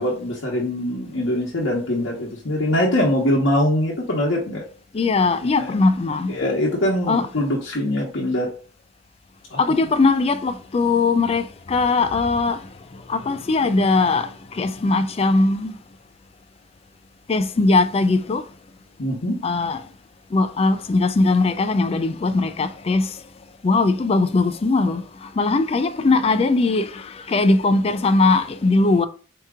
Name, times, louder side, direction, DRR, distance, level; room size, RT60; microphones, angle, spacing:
voice 1, 0.0-4.6 5.2-5.8 6.3-8.5 9.5-9.6 19.0-19.4, left 1 dB, 80° left, 1.0 m, -23 dB
voice 2, 4.9-6.3 7.1-7.3 9.6-12.6 12.9-15.7 17.3-18.4 19.4-19.8 20.3-23.2 23.6-29.1, left 3 dB, 30° left, 0.3 m, -20 dB
4.6 x 2.9 x 3.6 m
head